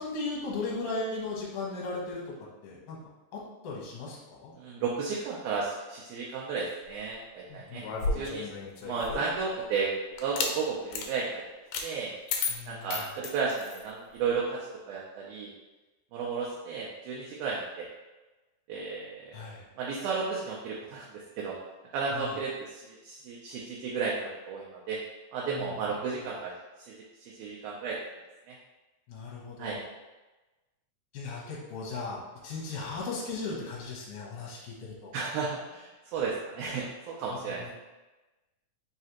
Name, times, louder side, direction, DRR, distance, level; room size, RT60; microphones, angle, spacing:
voice 1, 0.0-3.0 3.3-4.5 7.5-8.3 12.5-13.0 19.3-19.7 22.1-22.4 25.5-25.8 29.1-29.8 31.1-35.1 37.3-37.7, left 3 dB, 60° left, -4 dB, 1.8 m, -37 dB
voice 2, 4.6-7.8 8.1-8.5 8.8-11.4 11.8-12.1 12.7-14.6 14.9-15.5 16.1-17.9 18.7-19.4 19.8-21.1 21.4-21.6 21.9-25.0 25.3-26.5 26.9-28.0 28.5-28.6 29.6-29.8 35.1-37.7, right 5 dB, 80° right, -4 dB, 2.0 m, -33 dB
sound 1, 7.8-9.4 10.2-10.5 10.9-11.1 11.7-11.9 12.3-13.8, left 4 dB, 80° left, 1.7 m, -33 dB
4.8 x 3.2 x 2.9 m, 1.1 s
omnidirectional pair, 3.6 m